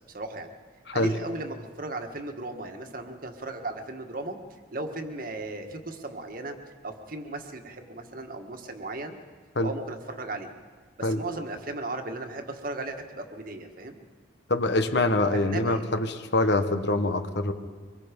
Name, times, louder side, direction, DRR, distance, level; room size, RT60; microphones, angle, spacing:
voice 1, 0.1-0.5 0.9-4.4 4.7-6.5 6.8-9.2 9.6-10.5 11.0-14.0 15.4-15.8, right 2 dB, 50° right, 5 dB, 1.7 m, -36 dB
voice 2, 14.5-17.5, left 2 dB, 60° left, 9 dB, 1.2 m, -24 dB
24.5 x 22.5 x 5.2 m, 1.5 s
head